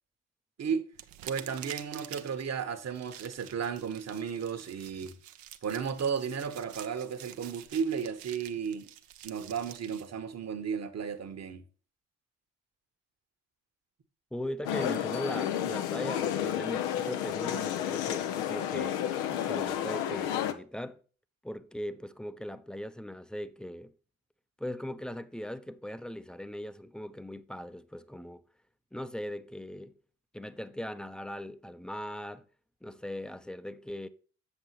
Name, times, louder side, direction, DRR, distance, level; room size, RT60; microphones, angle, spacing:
sound 1, 0.9-10.1, right 12 dB, 70° right, 0.8 m, -48 dB
voice 1, 1.2-5.2 5.6-8.9 9.2-11.6, right 6 dB, 45° right, 1.2 m, -34 dB
voice 2, 14.3-19.0 19.3-21.0 21.4-23.9 24.6-28.4 28.9-30.0 30.3-32.4 32.8-34.1, left 1 dB, ahead, 0.6 m, -39 dB
sound 2, 14.6-20.5, left 10 dB, 80° left, 0.8 m, -31 dB
7.5 x 7.1 x 3.0 m
hypercardioid pair, 50°, 36 cm